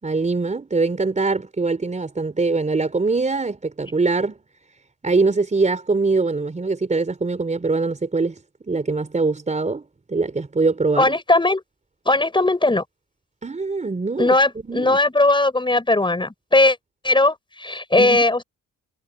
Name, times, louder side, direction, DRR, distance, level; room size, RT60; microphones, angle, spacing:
voice 1, 0.0-4.4 5.0-8.3 8.7-11.2 13.4-14.4 14.6-15.0 18.0-18.2, right 3 dB, 25° right, 4.1 m, -23 dB
voice 2, 11.0-11.6 12.1-12.8 14.2-16.8 17.0-18.4, left 2 dB, 15° left, 6.0 m, -18 dB
cardioid pair, 90°, 30 cm